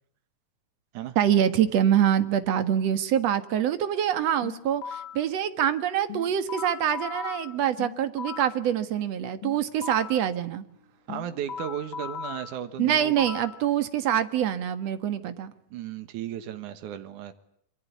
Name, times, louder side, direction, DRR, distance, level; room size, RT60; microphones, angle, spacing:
voice 1, 1.2-10.6 12.8-15.5, right 10 dB, 60° right, 11 dB, 2.6 m, -25 dB
sound 1, 4.4-5.3 6.1-8.6 9.4-10.3 11.1-13.6, left 8 dB, 45° left, 2.0 m, -38 dB
voice 2, 11.1-13.2 15.7-17.3, right 10 dB, 80° right, 9 dB, 2.9 m, -35 dB
26.5 x 24.0 x 8.4 m, 0.69 s
omnidirectional pair, 3.5 m